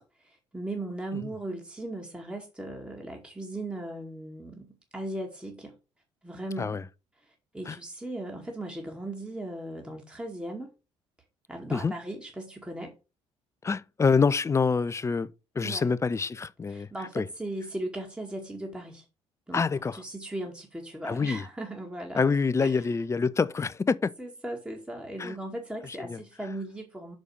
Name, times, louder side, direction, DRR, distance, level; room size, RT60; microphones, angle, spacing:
voice 1, 0.0-5.8 6.2-6.8 7.3-10.7 11.5-12.9 15.6-15.9 16.7-19.1 19.5-19.6 19.9-22.2 22.6-22.9 24.2-27.2, right 1 dB, 5° right, 2.1 m, -38 dB
voice 2, 13.6-15.3 15.6-16.9 17.1-17.2 19.5-20.0 21.0-21.4 22.1-24.1 25.2-25.3 26.1-26.2, left 5 dB, 20° left, 0.6 m, -26 dB
6.4 x 5.2 x 6.1 m
figure-of-eight pair, 50°, 15 cm